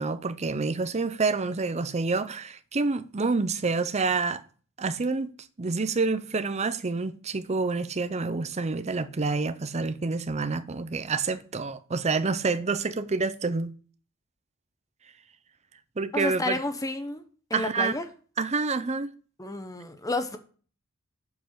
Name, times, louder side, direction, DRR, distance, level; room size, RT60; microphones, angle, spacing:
voice 1, 0.0-4.4 4.8-5.3 5.6-13.7 16.0-16.6 17.5-17.9 18.4-19.1, right 4 dB, 30° right, 0.6 m, -28 dB
voice 2, 16.1-17.2 17.5-18.0 19.4-20.4, left 2 dB, 15° left, 0.9 m, -30 dB
7.2 x 5.3 x 7.4 m
head